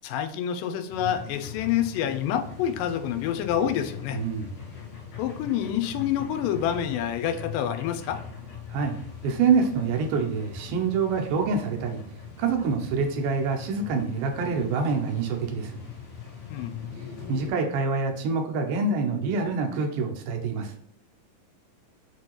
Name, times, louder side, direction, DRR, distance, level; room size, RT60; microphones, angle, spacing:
voice 1, 0.0-4.2 5.2-8.2 16.5-16.8, left 9 dB, 85° left, 8 dB, 2.2 m, -27 dB
sound 1, 0.9-17.5, left 7 dB, 55° left, 2.3 m, -41 dB
voice 2, 4.1-4.5 8.7-9.0 9.2-12.0 12.4-15.8 17.3-20.7, right 5 dB, 80° right, 3 dB, 2.2 m, -26 dB
6.1 x 2.8 x 2.9 m, 0.71 s
omnidirectional pair, 3.8 m